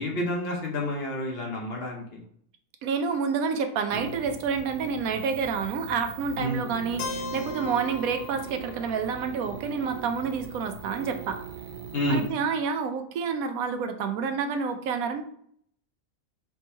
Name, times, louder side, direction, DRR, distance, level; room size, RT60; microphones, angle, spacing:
voice 1, 0.0-2.2 6.4-6.6 11.9-12.2, left 1 dB, 50° left, 0 dB, 1.0 m, -29 dB
voice 2, 2.8-11.4 12.1-15.2, right 5 dB, 85° right, 7 dB, 1.1 m, -29 dB
sound 1, 3.9-12.3, right 5 dB, 60° right, 0.5 m, -40 dB
Keyboard (musical), 7.0-10.9, left 4 dB, 90° left, 1.2 m, -40 dB
3.4 x 3.0 x 4.4 m, 0.65 s
omnidirectional pair, 1.5 m